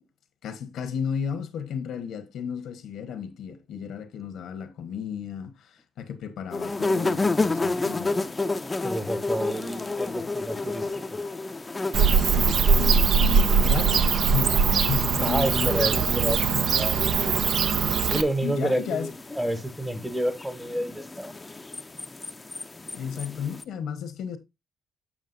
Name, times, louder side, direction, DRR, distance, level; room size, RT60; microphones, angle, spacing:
voice 1, 0.4-8.1 12.1-16.7 18.4-19.1 22.9-24.4, left 7 dB, 75° left, 1.1 m, -33 dB
sound 1, 6.5-23.6, left 3 dB, 20° left, 0.5 m, -32 dB
voice 2, 8.8-11.2 15.2-16.4 16.7-17.0 18.1-21.3, right 1 dB, 5° right, 0.9 m, -29 dB
Bird / Cricket, 11.9-18.2, right 6 dB, 65° right, 0.6 m, -21 dB
7.4 x 7.1 x 2.6 m
cardioid pair, 90°, 0 cm